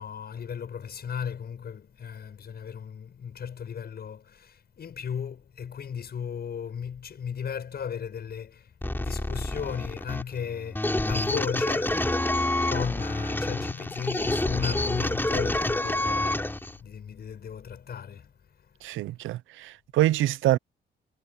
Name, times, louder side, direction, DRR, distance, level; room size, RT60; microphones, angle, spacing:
voice 1, 0.0-18.3 18.6-18.7, left 7 dB, 55° left, 6.6 m, -36 dB
sound 1, 8.8-16.8, left 1 dB, 10° left, 3.7 m, -28 dB
voice 2, 18.8-20.6, right 15 dB, 85° right, 0.6 m, -25 dB
cardioid pair, 90°, 20 cm